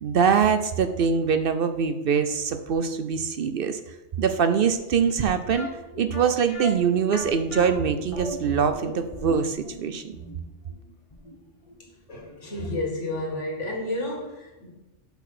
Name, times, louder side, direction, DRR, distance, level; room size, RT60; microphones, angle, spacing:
voice 1, 0.0-3.8 4.2-5.7 6.0-10.0, right 6 dB, 60° right, 9 dB, 0.7 m, -23 dB
sound 1, 5.5-12.4 12.6-12.7 13.3-13.4 13.7-13.8, left 2 dB, 30° left, 1.0 m, -38 dB
voice 2, 12.1-14.7, left 1 dB, 85° left, -1 dB, 2.3 m, -31 dB
5.9 x 5.8 x 6.0 m, 1.0 s
omnidirectional pair, 1.2 m